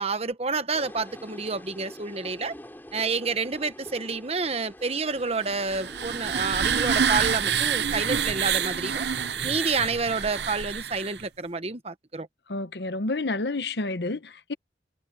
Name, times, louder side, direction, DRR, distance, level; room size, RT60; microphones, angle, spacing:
voice 1, 0.0-2.5 2.9-9.0 9.4-12.3, right 4 dB, 35° right, 1.2 m, -29 dB
sound 1, 0.7-10.4, equal, 10° left, 6.5 m, -46 dB
sound 2, 5.4-11.2, right 7 dB, 75° right, 0.8 m, -27 dB
voice 2, 12.5-14.5, left 2 dB, 75° left, 1.0 m, -29 dB
head